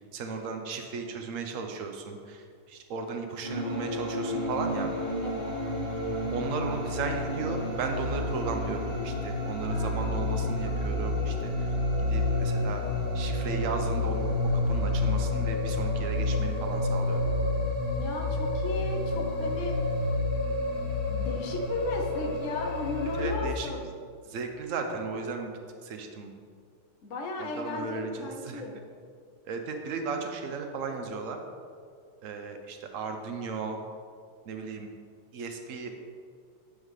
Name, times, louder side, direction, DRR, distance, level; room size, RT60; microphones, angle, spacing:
voice 1, 0.1-4.9 6.3-12.9 13.1-14.3 14.7-17.2 23.2-23.7 24.3-25.5 25.8-26.3 27.4-28.6 29.4-31.4 32.2-33.8 34.5-34.9 35.3-35.9, right 4 dB, 65° right, 5 dB, 0.8 m, -35 dB
sound 1, 3.4-23.4, left 2 dB, 25° right, 1.3 m, -29 dB
voice 2, 5.2-5.6 9.7-10.2 18.0-19.8 21.1-23.9 27.0-28.8, left 2 dB, 50° left, 0 dB, 0.9 m, -35 dB
sound 2, 6.7-13.9, equal, 65° left, 2.0 m, -45 dB
10.0 x 3.6 x 6.4 m, 2.1 s
omnidirectional pair, 2.3 m